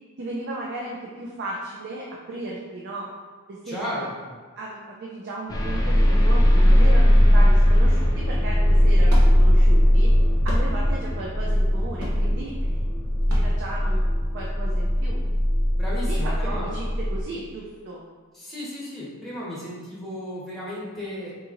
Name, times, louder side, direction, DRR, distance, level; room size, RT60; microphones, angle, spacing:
voice 1, 0.2-3.1 3.5-4.1 4.6-10.1 10.4-12.8 13.3-14.1 14.3-15.2 16.0-18.0, right 2 dB, 50° right, -4 dB, 0.4 m, -35 dB
voice 2, 3.6-4.3 15.8-16.7 18.3-21.3, equal, ahead, -8 dB, 1.0 m, -34 dB
sound 1, 5.5-17.2, equal, 15° left, 0.4 m, -19 dB
sound 2, 8.3-14.5, equal, 85° right, 0.8 m, -34 dB
3.7 x 2.9 x 2.5 m, 1.4 s
head